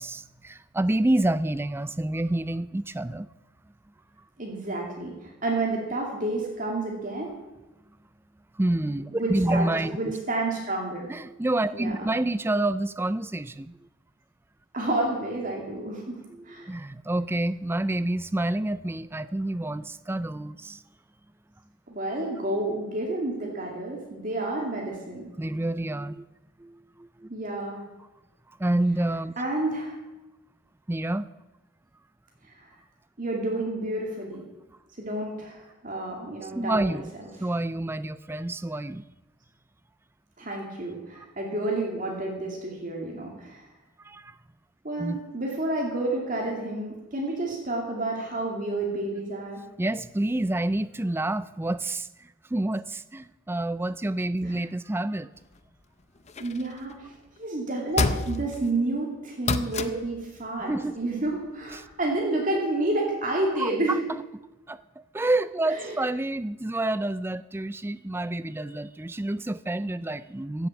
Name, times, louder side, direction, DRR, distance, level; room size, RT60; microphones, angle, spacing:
voice 1, 0.0-3.3 8.5-10.2 11.1-13.8 16.3-20.8 25.4-26.2 26.6-27.3 28.6-29.3 30.9-31.3 36.4-37.1 37.4-39.0 44.0-44.4 45.0-45.2 49.8-55.3 60.7-61.0 61.7-61.9 63.6-64.2 64.7-70.7, right 1 dB, 10° right, 16 dB, 0.4 m, -28 dB
voice 2, 4.4-7.3 9.1-11.1 11.7-12.1 14.7-16.2 16.4-16.7 21.9-25.3 27.3-27.8 29.4-30.0 32.5-32.7 33.2-34.4 35.0-37.0 40.4-43.6 44.8-49.6 54.4-54.6 56.4-64.0 65.7-65.9, right 2 dB, 40° right, -1 dB, 2.5 m, -30 dB
sound 1, 56.3-56.9 58.0-58.7 59.4-60.1 61.9-62.0, left 3 dB, 35° left, 0.6 m, -28 dB
15.5 x 7.8 x 7.3 m, 1.0 s
head